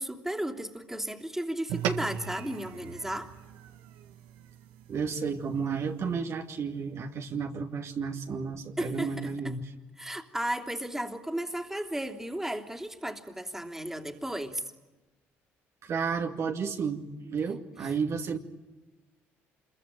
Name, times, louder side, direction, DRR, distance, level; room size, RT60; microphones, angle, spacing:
voice 1, 0.0-3.3 8.8-9.3 10.0-14.6 17.8-17.9, right 1 dB, 5° right, 4 dB, 3.1 m, -34 dB
sound 1, 1.7-6.3, right 10 dB, 85° right, 1.8 m, -39 dB
voice 2, 4.9-9.7 15.8-18.4, right 5 dB, 55° right, 3 dB, 2.4 m, -32 dB
26.5 x 23.0 x 9.1 m, 1.2 s
supercardioid pair, 65°, 6 cm